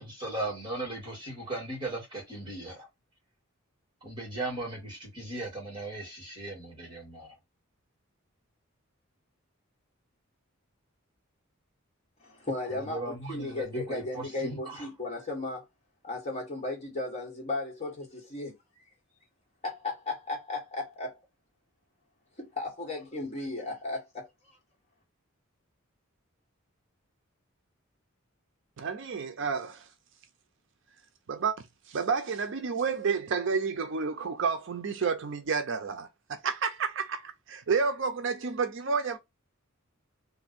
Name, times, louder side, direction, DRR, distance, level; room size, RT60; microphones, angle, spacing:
voice 1, 0.0-2.9 4.0-7.4 12.7-14.9, right 2 dB, 20° right, 2.2 m, -37 dB
voice 2, 12.2-15.7 16.0-18.8 19.6-21.2 22.4-24.6, left 2 dB, 30° left, 1.5 m, -35 dB
voice 3, 28.8-29.9 31.3-39.2, right 5 dB, 60° right, 0.5 m, -30 dB
3.3 x 2.5 x 4.1 m
head